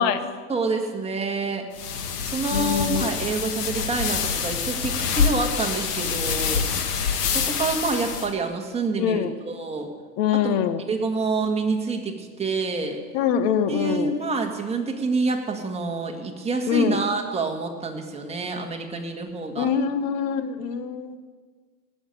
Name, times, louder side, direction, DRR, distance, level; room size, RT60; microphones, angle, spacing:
voice 1, 0.5-1.7 2.2-9.9 10.3-10.5 10.9-13.0 13.7-19.7, right 3 dB, 15° right, 2 dB, 1.9 m, -27 dB
sound 1, 1.7-8.3, left 6 dB, 80° left, 2.0 m, -26 dB
voice 2, 2.5-3.1 9.0-9.3 10.2-10.8 13.1-14.1 16.7-17.0 19.6-21.2, left 8 dB, 55° left, 11 dB, 1.4 m, -24 dB
17.5 x 7.2 x 9.4 m, 1.5 s
supercardioid pair, 130°, 46 cm